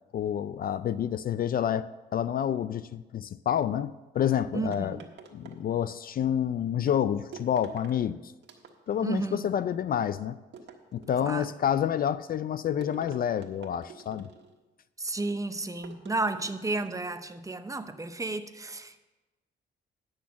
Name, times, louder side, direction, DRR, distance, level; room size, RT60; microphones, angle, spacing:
voice 1, 0.1-5.0 5.3-8.3 8.9-10.4 10.9-14.3, left 9 dB, 50° left, 0.4 m, -28 dB
voice 2, 4.5-5.0 9.0-9.4 11.2-11.5 15.0-19.0, right 3 dB, 15° right, 0.7 m, -32 dB
sound 1, 4.7-6.1 7.3-8.0 8.4-9.1 10.5-11.4 12.8-14.6 15.8-17.1, right 5 dB, 65° right, 1.4 m, -48 dB
10.0 x 6.3 x 7.0 m
cardioid pair, 90°, 20 cm